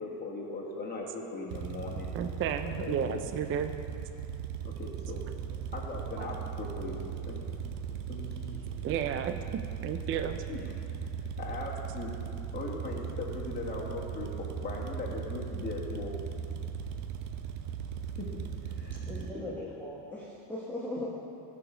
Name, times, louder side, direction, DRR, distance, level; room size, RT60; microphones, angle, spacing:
voice 1, 0.0-2.1 2.8-3.2 4.6-7.0 7.3-7.4 8.1-8.7 10.5-10.7 11.4-12.1 12.5-16.1 18.2-19.5, left 3 dB, 20° left, -3 dB, 1.6 m, -39 dB
sound 1, 1.5-19.3, right 7 dB, 80° right, 0.8 m, -38 dB
voice 2, 2.1-3.7 6.2-6.3 8.8-10.4, right 8 dB, 30° right, 8 dB, 0.3 m, -33 dB
voice 3, 18.9-21.1, left 1 dB, 5° left, -8 dB, 1.3 m, -39 dB
13.5 x 5.0 x 5.1 m, 2.7 s
cardioid pair, 110°, 50 cm